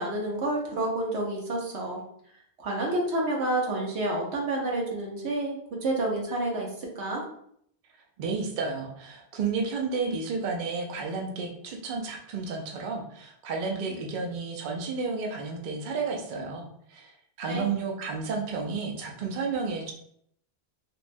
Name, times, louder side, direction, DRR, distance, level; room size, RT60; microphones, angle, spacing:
voice 1, 0.0-2.0 2.6-6.7 7.0-7.2 17.5-17.6, right 1 dB, 85° right, -1 dB, 1.1 m, -29 dB
voice 2, 8.2-19.9, right 4 dB, 60° right, 1 dB, 0.6 m, -32 dB
3.3 x 2.1 x 2.5 m, 0.67 s
omnidirectional pair, 1.1 m